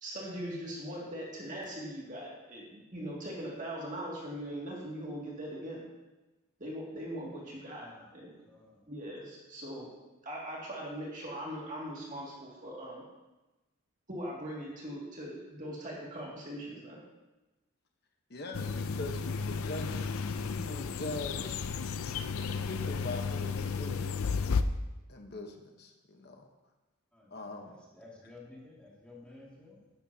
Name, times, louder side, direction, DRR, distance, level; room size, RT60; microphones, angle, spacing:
voice 1, 0.0-5.8 6.6-7.9 8.1-8.3 8.9-9.9 10.2-13.0 14.1-17.0, equal, 35° right, -4 dB, 2.3 m, -40 dB
voice 2, 7.8-8.1 8.4-8.8 27.1-29.9, left 2 dB, 5° left, -6 dB, 2.3 m, -53 dB
voice 3, 18.3-20.1 20.4-21.8 22.6-24.3 25.1-26.5 27.3-27.7, left 2 dB, 50° left, 3 dB, 1.1 m, -42 dB
sound 1, 18.5-24.6, left 5 dB, 80° left, 0.5 m, -33 dB
12.5 x 10.5 x 2.8 m, 1.1 s
head